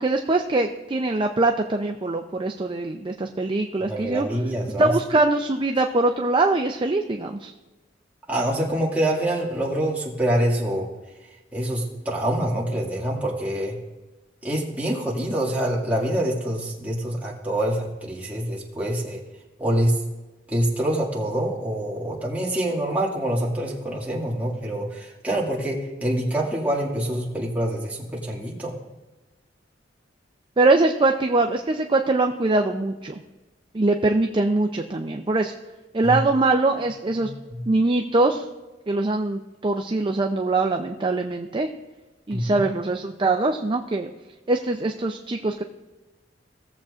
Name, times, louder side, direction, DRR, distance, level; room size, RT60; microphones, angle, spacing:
voice 1, 0.0-4.3 4.8-7.5 30.6-33.1 33.7-35.5 35.9-37.3 37.7-38.4 38.9-41.7 42.3-44.1 44.5-45.6, right 2 dB, 25° right, 4 dB, 0.5 m, -22 dB
voice 2, 3.8-4.9 8.3-10.9 11.5-13.8 14.4-19.2 19.6-20.0 20.5-28.8 36.0-36.2 37.1-37.6 42.3-42.6, right 1 dB, 10° right, -5 dB, 2.1 m, -26 dB
17.5 x 7.5 x 2.5 m, 1.1 s
head